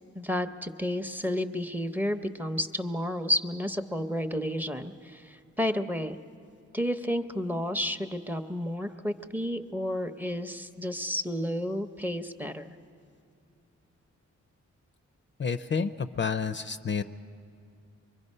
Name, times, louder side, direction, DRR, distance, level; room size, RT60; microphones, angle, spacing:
voice 1, 0.1-6.2 6.7-12.7, left 1 dB, 5° right, 9 dB, 0.6 m, -31 dB
voice 2, 15.4-17.0, left 5 dB, 40° left, 10 dB, 0.4 m, -29 dB
24.5 x 22.5 x 5.4 m, 2.4 s
wide cardioid pair, 145°, 29 cm